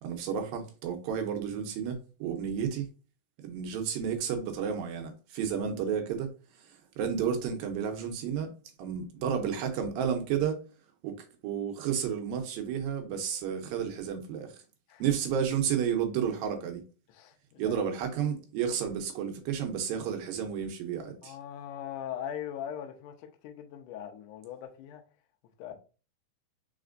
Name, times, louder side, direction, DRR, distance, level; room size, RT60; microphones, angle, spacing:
voice 1, 0.0-2.9 3.4-6.3 7.0-8.5 8.8-10.6 11.0-14.5 15.0-16.8 17.6-21.4, right 8 dB, 80° right, 2.4 m, -31 dB
voice 2, 17.1-17.8 21.2-25.0 25.6-25.7, left 10 dB, 80° left, 1.9 m, -40 dB
4.9 x 4.2 x 2.5 m
omnidirectional pair, 4.3 m